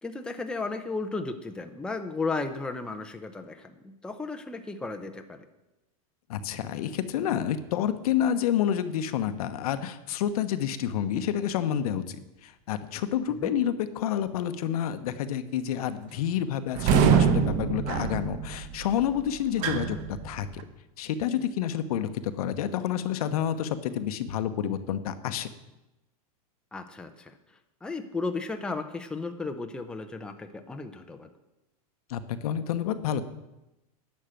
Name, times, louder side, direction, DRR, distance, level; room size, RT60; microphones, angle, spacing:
voice 1, 0.0-5.4 13.3-13.6 26.7-27.3 27.8-31.3, left 3 dB, 5° left, 5 dB, 0.7 m, -34 dB
voice 2, 6.3-20.0 20.2-20.6 21.0-25.5 32.1-33.2, left 10 dB, 75° left, 10 dB, 1.0 m, -29 dB
sound 1, 16.7-20.6, right 7 dB, 45° right, 0.9 m, -25 dB
10.5 x 6.6 x 9.0 m, 0.98 s
supercardioid pair, 145°, 19 cm